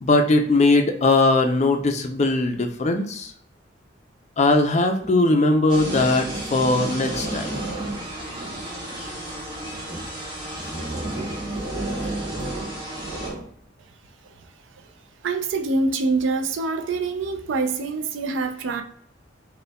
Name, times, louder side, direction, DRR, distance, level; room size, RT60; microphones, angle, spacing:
voice 1, 0.0-3.3 4.4-7.5, left 2 dB, 35° left, 5 dB, 0.4 m, -20 dB
sound 1, 5.0-5.1 5.8-9.0 9.6-10.1 10.5-13.5, right 2 dB, 50° right, 1.5 m, -32 dB
sound 2, 5.7-13.3, right 1 dB, 25° right, 0.8 m, -35 dB
voice 2, 15.2-18.8, right 3 dB, 70° right, 7 dB, 0.4 m, -25 dB
5.2 x 2.2 x 2.2 m, 0.62 s
head